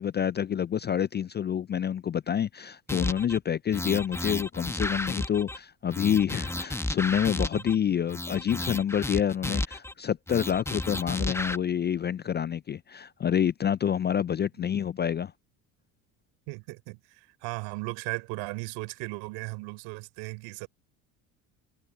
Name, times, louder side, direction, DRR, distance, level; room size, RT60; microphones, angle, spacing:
voice 1, 0.0-15.3, left 9 dB, 25° left, 0.4 m, -28 dB
sound 1, 2.9-3.4 3.7-5.6 5.9-7.7 8.1-9.9 10.3-11.6, left 2 dB, 5° left, 1.1 m, -32 dB
voice 2, 16.5-20.7, right 28 dB, 70° right, 3.7 m, -37 dB
hypercardioid pair, 70°, 46 cm